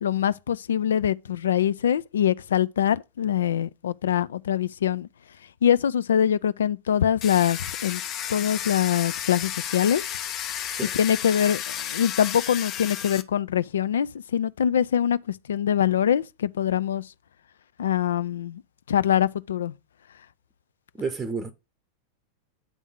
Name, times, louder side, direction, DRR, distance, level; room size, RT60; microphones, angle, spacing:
voice 1, 0.0-5.1 5.6-8.0 8.3-10.0 10.9-17.0 17.8-18.6 18.9-19.7, left 9 dB, 65° left, 0.4 m, -24 dB
Domestic sounds home sounds, 7.2-13.2, left 10 dB, 35° left, 0.8 m, -32 dB
voice 2, 21.0-21.5, right 4 dB, 15° right, 0.8 m, -30 dB
9.3 x 3.6 x 6.2 m
figure-of-eight pair, 90°, 0 cm